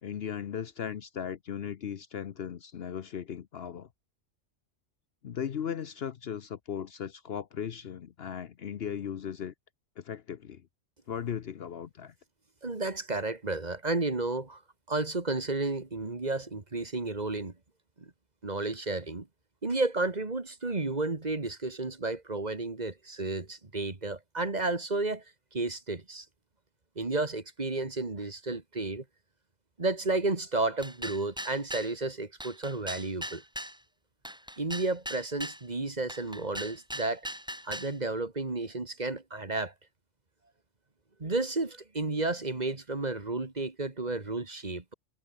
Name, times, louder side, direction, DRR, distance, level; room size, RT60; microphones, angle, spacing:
voice 1, 0.0-3.9 5.2-9.5 10.0-10.7 11.1-12.1, left 8 dB, 60° left, 0.9 m, -37 dB
voice 2, 12.6-14.6 14.9-17.5 18.0-18.1 18.4-19.3 19.6-25.2 25.5-26.3 27.0-29.0 29.8-33.4 34.6-37.3 37.7-39.7 41.2-44.9, right 2 dB, 35° right, 2.0 m, -32 dB
sound 1, 30.8-31.9 32.4-33.8 34.2-35.6 36.1-37.9, equal, 5° right, 1.4 m, -39 dB
omnidirectional pair, 1.3 m